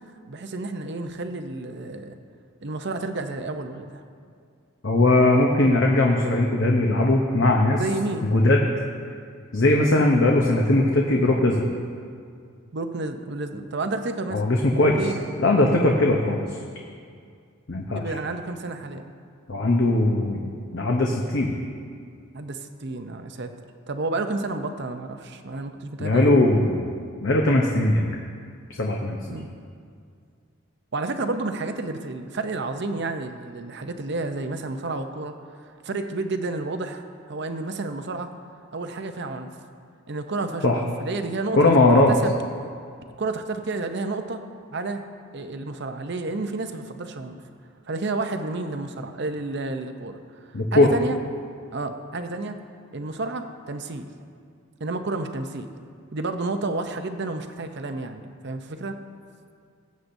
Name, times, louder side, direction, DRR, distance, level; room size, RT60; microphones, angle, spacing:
voice 1, 0.3-2.2 2.6-4.0 7.7-8.3 12.7-14.4 15.0-15.2 17.9-19.0 22.3-23.5 23.9-26.4 29.3-29.5 30.9-35.6 35.8-38.3 38.7-39.5 40.1-41.7 42.1-42.3 43.2-44.4 44.7-45.0 45.3-47.4 47.9-50.2 50.5-51.2 51.7-52.6 52.9-54.1 54.8-55.7 56.1-59.0, right 3 dB, 50° right, 7 dB, 0.6 m, -30 dB
voice 2, 4.8-7.8 8.2-8.7 9.5-11.6 14.3-15.0 15.4-16.4 17.7-18.0 19.5-20.4 20.7-21.6 26.0-26.9 27.2-28.1 28.8-29.2 40.6-40.8 41.5-42.1 50.5-50.9, left 2 dB, 55° left, 0 dB, 0.8 m, -19 dB
20.0 x 8.3 x 2.7 m, 2.2 s
head